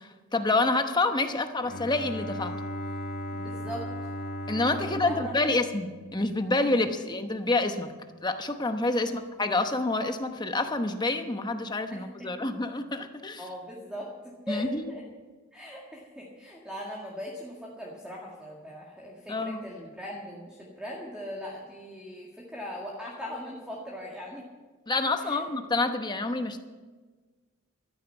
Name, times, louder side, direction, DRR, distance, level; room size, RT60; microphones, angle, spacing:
voice 1, 0.0-2.5 4.5-7.9 8.2-13.4 14.5-14.8 19.3-19.6 24.9-26.6, left 2 dB, 20° left, 7 dB, 0.9 m, -28 dB
Bowed string instrument, 1.6-6.9, equal, 50° left, 1.6 m, -37 dB
voice 2, 3.3-3.8 4.8-5.3 7.0-7.1 9.0-9.2 11.9-12.3 13.4-14.1 14.5-15.0 15.5-24.5 25.2-25.4, equal, 5° right, -3 dB, 1.9 m, -40 dB
13.5 x 10.0 x 8.0 m, 1.3 s
head